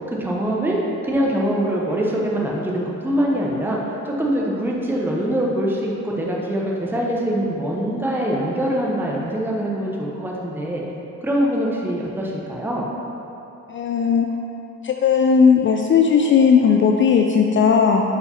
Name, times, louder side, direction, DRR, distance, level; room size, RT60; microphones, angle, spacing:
voice 1, 0.1-0.8 1.0-3.8 4.0-10.8 11.2-12.9, right 1 dB, 5° right, -3 dB, 0.8 m, -23 dB
voice 2, 13.7-14.3 14.8-18.0, left 6 dB, 40° left, 2 dB, 0.4 m, -16 dB
5.1 x 4.8 x 4.2 m, 2.9 s
cardioid pair, 90°, 30 cm